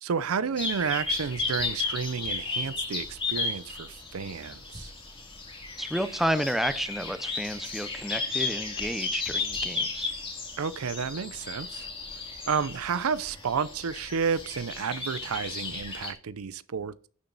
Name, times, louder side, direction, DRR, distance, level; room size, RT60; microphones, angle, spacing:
voice 1, 0.0-4.9 10.6-11.9 12.5-17.1, right 6 dB, 80° right, 0.5 m, -31 dB
sound 1, 0.6-16.1, left 4 dB, 25° left, 2.3 m, -34 dB
voice 2, 5.8-10.1, equal, ahead, 0.6 m, -31 dB
11.5 x 7.1 x 3.9 m
head